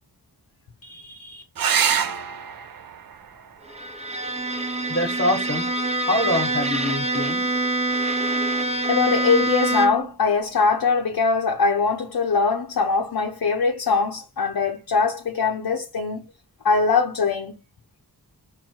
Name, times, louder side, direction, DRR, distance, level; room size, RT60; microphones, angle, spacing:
voice 1, 0.8-1.4 4.9-5.6 6.0-7.5, left 1 dB, 20° left, 1.2 m, -26 dB
sound 1, 1.5-6.6 8.5-9.1 12.6-12.7 13.0-13.1, right 7 dB, 60° right, 0.5 m, -29 dB
Bowed string instrument, 3.7-10.2, right 2 dB, 15° right, 0.8 m, -25 dB
voice 2, 8.9-16.3 16.6-17.6, left 4 dB, 60° left, 0.7 m, -22 dB
4.2 x 2.1 x 4.4 m
wide cardioid pair, 50°, 40 cm